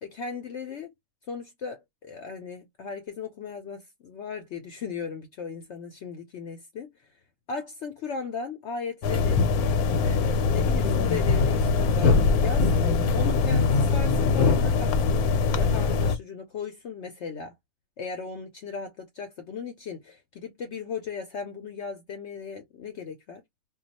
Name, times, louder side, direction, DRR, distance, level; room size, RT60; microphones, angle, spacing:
voice 1, 0.0-0.9 1.3-7.1 7.5-9.4 9.9-15.2 15.5-17.5 18.0-23.4, left 5 dB, 65° left, 0.7 m, -37 dB
sound 1, 9.0-16.2, left 4 dB, 80° left, 1.1 m, -22 dB
2.3 x 2.2 x 4.0 m
omnidirectional pair, 1.5 m